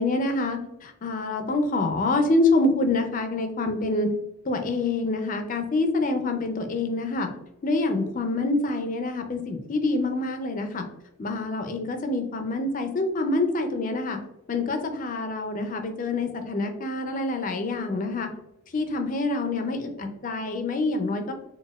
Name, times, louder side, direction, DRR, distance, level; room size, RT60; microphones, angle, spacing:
voice 1, 0.0-4.1 4.4-7.3 7.6-10.8 11.2-14.2 14.5-18.3 18.7-21.3, left 2 dB, 35° left, 6 dB, 0.4 m, -26 dB
4.1 x 2.2 x 2.3 m, 0.87 s
head